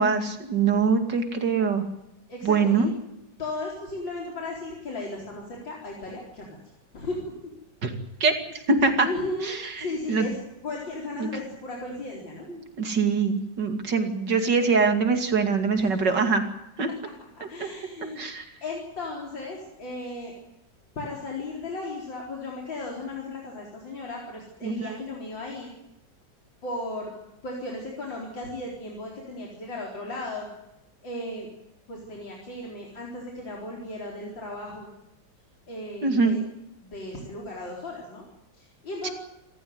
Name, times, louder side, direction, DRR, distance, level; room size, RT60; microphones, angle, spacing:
voice 1, 0.0-1.8 2.4-2.9 7.8-7.9 8.2-8.3 8.7-9.1 9.4-10.3 11.2-11.3 12.5-16.4 16.8-16.9 17.6-17.7 18.2-18.5 24.6-25.0 36.0-36.4 39.0-39.1, right 4 dB, 70° right, 6 dB, 3.0 m, -23 dB
voice 2, 2.3-2.8 3.4-6.6 6.9-7.3 9.0-10.4 10.6-12.5 15.8-16.0 17.4-18.2 18.6-20.3 21.0-25.7 26.6-27.1 27.4-30.5 31.0-31.5 31.9-34.9 35.7-36.4 36.8-38.2 38.5-39.1, left 2 dB, 90° left, -2 dB, 5.0 m, -35 dB
27.5 x 14.5 x 9.5 m, 0.89 s
omnidirectional pair, 2.0 m